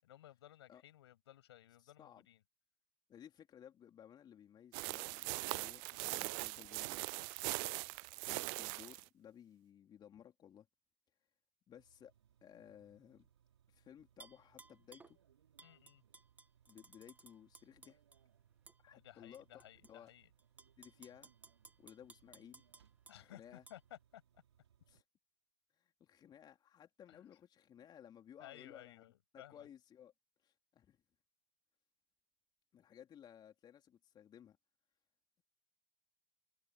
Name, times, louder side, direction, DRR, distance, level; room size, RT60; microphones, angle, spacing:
voice 1, 0.0-2.4 15.6-16.0 18.9-20.3 23.1-24.2 27.1-27.2 28.4-29.7, left 13 dB, 70° left, 7.5 m, -57 dB
voice 2, 1.8-2.3 3.1-7.2 8.3-10.7 11.7-12.1 12.4-13.3 13.7-15.2 16.7-18.0 18.8-19.6 19.9-20.1 20.8-21.3 21.8-22.6 23.2-23.6 24.9-25.0 25.8-29.1 29.3-30.1 30.4-31.0 32.7-34.6, left 9 dB, 30° left, 3.4 m, -58 dB
sound 1, 4.7-9.1, right 35 dB, 50° right, 0.4 m, -41 dB
sound 2, 11.7-25.0, right 9 dB, 80° right, 4.8 m, -72 dB
Tap / Glass, 14.2-15.1 15.6-18.2 18.7-18.8 19.3-19.9 20.4-23.2 23.7-23.8, right 3 dB, 10° right, 1.6 m, -60 dB
hypercardioid pair, 95°, 14 cm